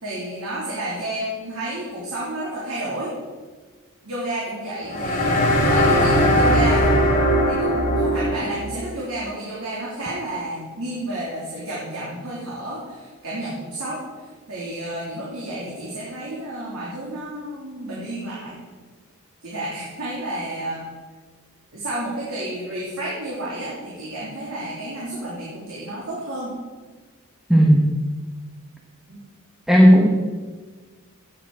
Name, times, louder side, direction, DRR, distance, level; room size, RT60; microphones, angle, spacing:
voice 1, 0.0-3.1 4.0-6.8 7.5-14.0 14.5-18.6 19.4-20.9 21.7-26.5 29.1-29.2, right 1 dB, 70° right, -7 dB, 3.3 m, -31 dB
sound 1, 4.9-8.6, equal, 35° left, 2.8 m, -19 dB
voice 2, 27.5-27.9 29.7-30.1, equal, ahead, 0 dB, 1.1 m, -13 dB
16.5 x 8.4 x 4.8 m, 1.4 s
head